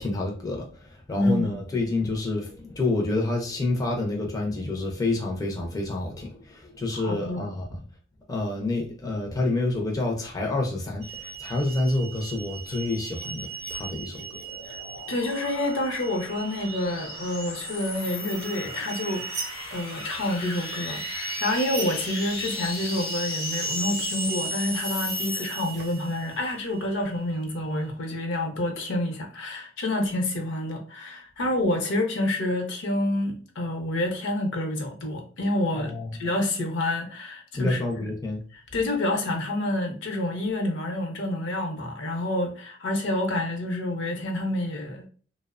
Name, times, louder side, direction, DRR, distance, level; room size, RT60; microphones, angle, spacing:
voice 1, 0.0-7.8 8.3-14.3 35.7-36.1 37.5-38.4, left 2 dB, 20° left, 0.4 m, -28 dB
voice 2, 1.1-1.5 6.9-7.4 14.7-14.8 15.1-35.9 36.2-37.8 38.5-45.1, left 1 dB, 65° left, 0.6 m, -28 dB
sound 1, 11.0-27.8, right 5 dB, 55° right, 0.6 m, -38 dB
sound 2, 13.6-26.2, left 3 dB, 85° left, 0.8 m, -36 dB
2.6 x 2.0 x 2.3 m
head